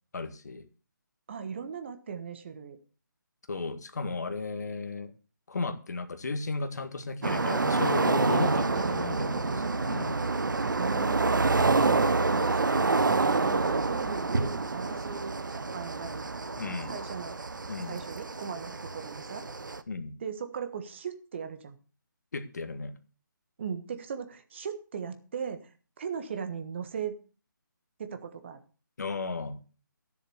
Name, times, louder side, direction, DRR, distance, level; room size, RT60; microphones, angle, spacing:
voice 1, 0.1-0.6 3.5-5.1 5.5-9.6 9.9-10.2 16.6-16.9 17.7-18.0 19.9-20.2 22.3-22.9 29.0-29.6, left 3 dB, 50° left, 10 dB, 1.6 m, -34 dB
voice 2, 1.3-2.8 10.8-11.6 12.3-16.3 16.9-17.4 17.9-19.4 20.2-21.7 23.6-25.7 26.0-27.2 28.0-28.6, right 6 dB, 35° right, 9 dB, 1.3 m, -38 dB
sound 1, 7.2-19.8, right 3 dB, 65° right, 1.1 m, -28 dB
13.5 x 7.2 x 6.9 m, 0.37 s
figure-of-eight pair, 150°, 11 cm